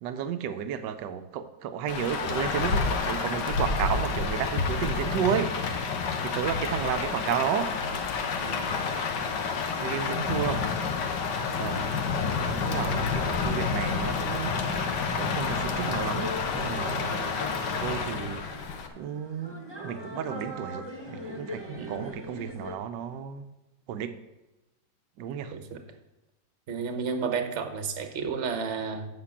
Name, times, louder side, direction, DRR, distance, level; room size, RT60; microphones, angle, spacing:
voice 1, 0.0-5.8 6.2-7.7 9.7-10.7 11.5-11.9 12.5-14.9 15.2-17.2 17.8-18.4 18.9-23.5 23.9-24.2 25.2-25.6, right 8 dB, 85° right, 9 dB, 1.3 m, -32 dB
Rain, 1.9-18.9, left 5 dB, 75° left, 1.5 m, -29 dB
voice 2, 8.4-8.8 21.7-22.1 25.5-25.8 26.7-29.1, right 5 dB, 50° right, 7 dB, 1.1 m, -32 dB
sound 1, 12.7-22.7, equal, 20° right, 1.0 m, -41 dB
8.1 x 5.9 x 7.0 m, 1.0 s
omnidirectional pair, 1.9 m